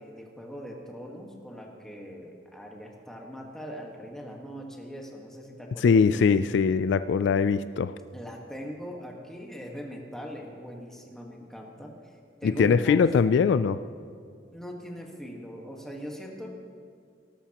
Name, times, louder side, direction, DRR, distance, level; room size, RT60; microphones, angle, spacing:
voice 1, 0.0-6.4 8.1-11.9 12.4-13.4 14.5-16.5, equal, 5° left, -1 dB, 1.4 m, -41 dB
voice 2, 5.8-7.9 12.4-13.8, left 5 dB, 70° left, 13 dB, 0.3 m, -22 dB
17.5 x 12.5 x 2.9 m, 2.2 s
head